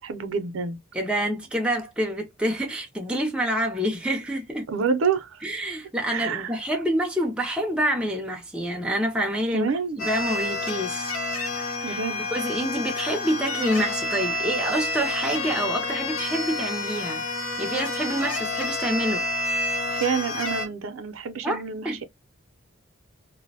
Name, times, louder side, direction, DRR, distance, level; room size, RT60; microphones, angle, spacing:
voice 1, 0.0-0.8 4.7-5.4 6.1-6.6 9.5-10.0 11.8-12.2 19.9-22.1, right 6 dB, 75° right, 0.5 m, -28 dB
voice 2, 0.9-4.7 5.4-11.1 11.9-12.0 12.3-17.2 17.6-19.3 21.4-22.1, equal, 5° right, 0.4 m, -27 dB
sound 1, 10.0-20.7, left 2 dB, 85° left, 0.8 m, -29 dB
2.4 x 2.0 x 2.7 m
head